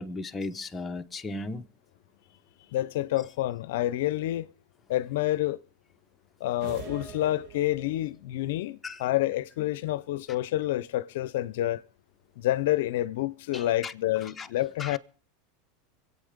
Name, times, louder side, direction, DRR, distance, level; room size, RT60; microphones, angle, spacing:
voice 1, 0.0-1.6 8.8-9.0 10.3-10.4 13.5-13.9 14.2-14.5 14.8-15.0, left 3 dB, 15° left, 1.0 m, -36 dB
voice 2, 2.7-4.5 4.9-5.6 6.4-11.8 12.4-15.0, left 14 dB, 75° left, 0.6 m, -28 dB
sound 1, 6.6-8.2, right 5 dB, 55° right, 2.7 m, -43 dB
24.5 x 8.6 x 5.1 m
supercardioid pair, 115°, 0 cm